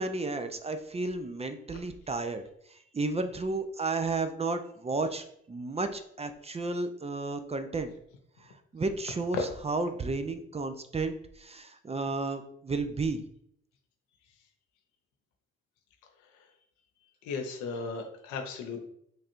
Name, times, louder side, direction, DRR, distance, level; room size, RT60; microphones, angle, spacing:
voice 1, 0.0-2.4 2.7-7.9 8.4-13.2, right 3 dB, 20° right, 8 dB, 0.5 m, -33 dB
voice 2, 17.2-18.8, left 4 dB, 90° left, 4 dB, 0.7 m, -35 dB
3.2 x 2.5 x 4.4 m, 0.71 s
supercardioid pair, 50°, 29 cm